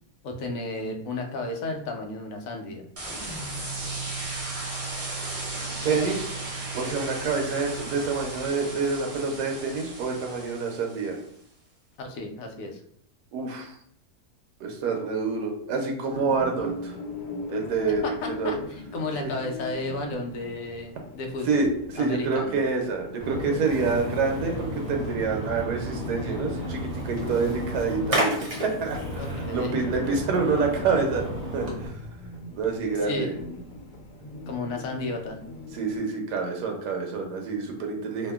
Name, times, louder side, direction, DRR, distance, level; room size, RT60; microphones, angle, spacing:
voice 1, 0.2-2.8 12.0-12.8 18.0-21.6 21.9-22.6 29.2-29.8 33.0-33.3 34.5-35.4, left 2 dB, 70° left, 3 dB, 0.9 m, -33 dB
sound 1, 3.0-11.2, right 2 dB, 65° right, 0.3 m, -35 dB
voice 2, 5.8-6.2 6.7-11.2 13.3-13.8 14.6-17.0 17.5-18.0 18.4-18.6 19.2-19.3 21.5-21.7 21.9-31.2 31.5-31.9 32.5-33.3 35.7-38.3, right 4 dB, 90° right, 2 dB, 1.1 m, -27 dB
sound 2, 16.1-36.0, left 3 dB, 85° left, 1.2 m, -41 dB
Splash splatter, 23.2-31.9, equal, 30° right, 0.6 m, -32 dB
2.7 x 2.5 x 2.3 m, 0.66 s
omnidirectional pair, 1.7 m